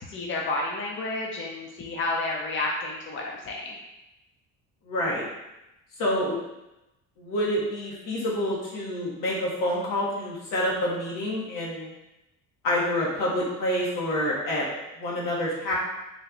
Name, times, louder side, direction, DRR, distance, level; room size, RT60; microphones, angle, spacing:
voice 1, 0.1-3.8, left 2 dB, 35° left, -2 dB, 0.7 m, -30 dB
voice 2, 4.8-5.2 6.0-6.3 7.2-11.9 12.6-14.7 15.0-15.7, left 1 dB, 75° left, -5 dB, 1.2 m, -27 dB
3.2 x 2.2 x 3.7 m, 0.94 s
supercardioid pair, 80°, 33 cm